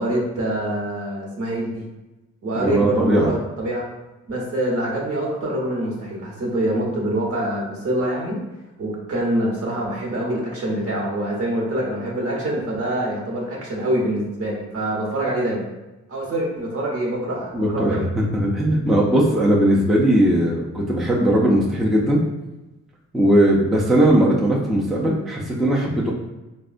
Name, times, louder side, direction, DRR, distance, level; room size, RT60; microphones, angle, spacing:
voice 1, 0.0-1.9 2.4-3.8 4.3-8.4 8.8-15.7 16.1-18.1, right 1 dB, 50° right, -2 dB, 1.0 m, -25 dB
voice 2, 2.6-3.3 17.5-22.2 23.1-26.1, right 1 dB, ahead, -4 dB, 0.4 m, -19 dB
3.3 x 2.1 x 2.4 m, 1.0 s
cardioid pair, 90°, 30 cm